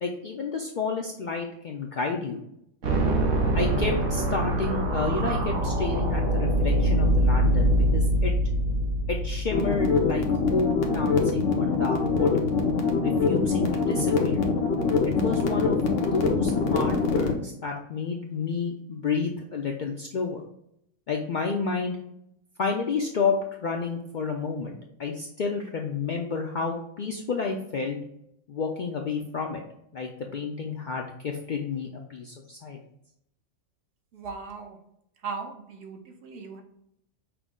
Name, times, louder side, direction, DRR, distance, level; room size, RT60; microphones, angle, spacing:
voice 1, 0.0-2.4 3.5-8.3 9.1-12.4 13.0-14.4 15.0-15.8 16.1-20.4 21.1-22.0 22.6-28.0 28.5-29.6 29.9-32.8, left 4 dB, 60° left, 1 dB, 0.5 m, -30 dB
sound 1, 2.8-10.9, right 1 dB, 90° right, 1.2 m, -24 dB
sound 2, 9.5-17.3, left 5 dB, 80° left, 1.1 m, -24 dB
voice 2, 34.1-34.8 35.2-36.6, right 5 dB, 65° right, 4 dB, 0.9 m, -38 dB
5.9 x 2.0 x 3.6 m, 0.76 s
omnidirectional pair, 1.3 m